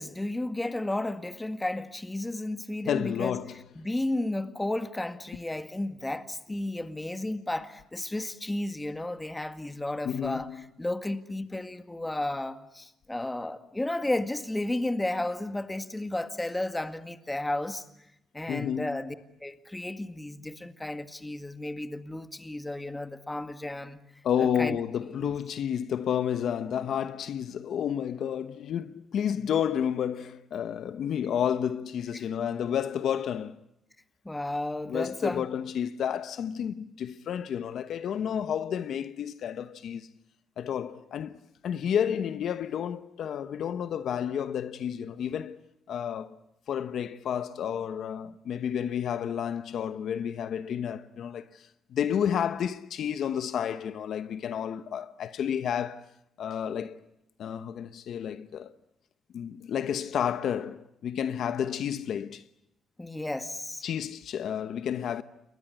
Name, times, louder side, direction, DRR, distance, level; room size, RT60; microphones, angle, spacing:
voice 1, 0.0-3.4 3.8-10.5 10.8-17.8 18.3-19.2 19.4-24.0 24.4-24.8 25.2-25.3 32.1-32.3 34.3-35.4 63.0-63.8, left 1 dB, 10° left, 1.9 m, -33 dB
voice 2, 2.9-3.6 10.0-10.6 18.5-19.0 24.2-33.6 34.9-40.1 40.6-45.6 45.9-46.4 46.7-56.1 56.4-57.0 57.4-58.7 59.3-62.4 63.8-65.2, left 8 dB, 65° left, 1.0 m, -31 dB
28.5 x 21.5 x 9.2 m
cardioid pair, 90°, 0 cm